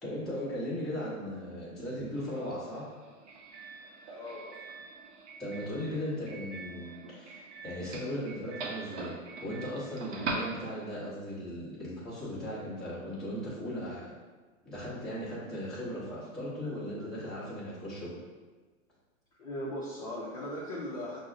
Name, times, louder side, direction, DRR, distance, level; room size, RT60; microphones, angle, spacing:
voice 1, 0.0-2.9 4.0-4.2 5.4-9.1 9.4-14.1 14.6-18.1, equal, ahead, -12 dB, 0.7 m, -37 dB
Doorbell, 2.1-11.1, right 3 dB, 55° right, 0.7 m, -43 dB
voice 2, 4.1-4.6 16.6-17.1 19.4-21.2, left 1 dB, 30° left, -7 dB, 0.4 m, -39 dB
5.9 x 2.0 x 2.4 m, 1.3 s
hypercardioid pair, 155°, 41 cm